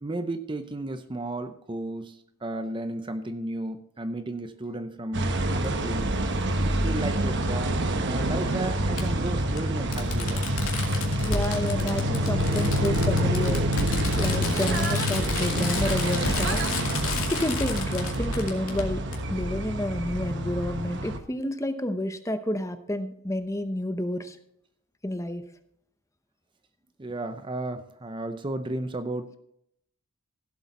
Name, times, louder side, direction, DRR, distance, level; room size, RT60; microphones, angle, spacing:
voice 1, 0.0-6.2 6.6-10.5 27.0-29.4, right 2 dB, 20° right, 10 dB, 0.6 m, -34 dB
sound 1, 5.1-21.2, right 1 dB, 55° right, 1.1 m, -27 dB
Fireworks, 5.6-5.7 7.3-7.4 9.0-9.1 9.6-9.7 9.9-18.8 19.1-19.2, left 4 dB, 70° left, 2.4 m, -32 dB
voice 2, 11.1-13.6 14.2-16.6 17.3-19.0 19.3-24.4 25.0-25.4, left 1 dB, 15° left, 9 dB, 0.7 m, -30 dB
15.5 x 7.9 x 4.1 m, 0.72 s
head